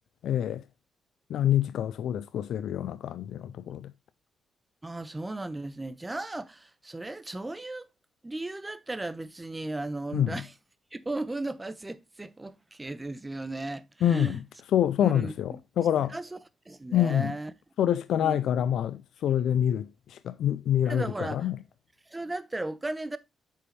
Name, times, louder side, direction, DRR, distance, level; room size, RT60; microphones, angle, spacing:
voice 1, 0.2-0.6 1.3-3.9 10.1-10.3 14.0-14.4 14.7-16.1 16.9-17.3 17.8-21.6, left 10 dB, 75° left, 0.4 m, -26 dB
voice 2, 4.8-7.9 8.2-10.6 10.9-14.4 15.0-15.3 15.8-16.4 16.7-17.5 18.2-18.7 20.8-21.5 22.1-23.2, right 2 dB, 15° right, 0.9 m, -36 dB
8.5 x 5.4 x 3.2 m
cardioid pair, 80°, 0 cm